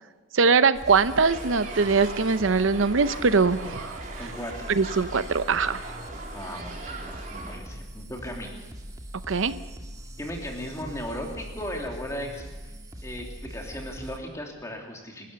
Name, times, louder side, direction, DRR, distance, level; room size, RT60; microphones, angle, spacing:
voice 1, 0.3-4.0 4.7-5.9 9.3-9.5, right 4 dB, 75° right, 13 dB, 0.7 m, -22 dB
sound 1, 0.7-14.2, equal, 20° right, 1.8 m, -41 dB
sound 2, 1.1-7.6, right 3 dB, 40° right, 3.0 m, -40 dB
voice 2, 4.2-4.7 6.3-8.6 10.2-12.5 13.0-15.3, equal, 15° left, 1 dB, 3.0 m, -36 dB
29.5 x 13.0 x 6.9 m, 1.2 s
head